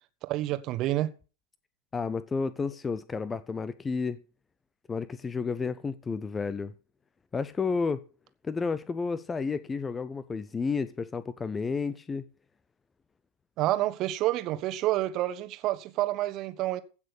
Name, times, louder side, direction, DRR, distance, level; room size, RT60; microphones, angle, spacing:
voice 1, 0.3-1.1 13.6-16.8, right 15 dB, 35° right, 1.3 m, -28 dB
voice 2, 1.9-4.2 4.9-6.7 7.3-8.0 8.4-12.2, left 4 dB, 15° left, 0.7 m, -31 dB
16.0 x 6.3 x 6.6 m
figure-of-eight pair, 90°, 0 cm